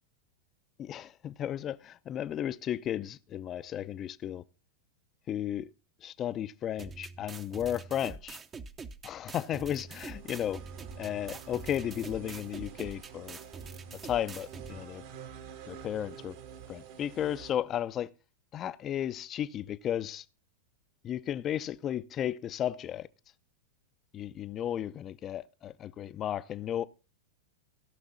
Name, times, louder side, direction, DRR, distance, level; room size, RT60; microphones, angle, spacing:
voice 1, 0.8-4.4 5.3-5.7 6.0-8.4 9.0-10.6 11.0-13.4 14.0-15.0 15.7-16.4 16.7-18.1 18.5-20.3 21.0-23.1 24.1-26.9, left 10 dB, 35° left, 0.6 m, -34 dB
sound 1, 6.8-14.8, right 4 dB, 25° right, 0.8 m, -45 dB
sound 2, 9.9-17.5, right 8 dB, 65° right, 2.0 m, -48 dB
16.5 x 5.9 x 3.9 m
hypercardioid pair, 110°, 0 cm